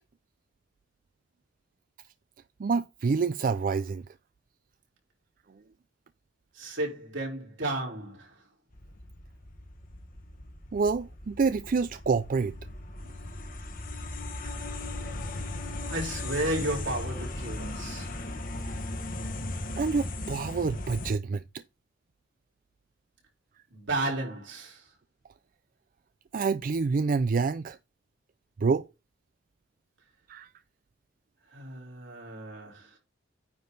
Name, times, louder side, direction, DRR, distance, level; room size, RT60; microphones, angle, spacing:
voice 1, 2.6-4.0 10.7-12.5 14.4-14.6 19.8-21.4 26.3-27.8 28.6-28.9 30.3-30.5, right 4 dB, 45° right, 0.4 m, -27 dB
voice 2, 6.5-8.3 15.9-18.2 23.7-24.8 31.5-32.9, right 1 dB, 75° right, 4.4 m, -33 dB
sound 1, 8.7-21.1, left 2 dB, 45° left, 1.3 m, -37 dB
9.4 x 5.2 x 4.0 m
head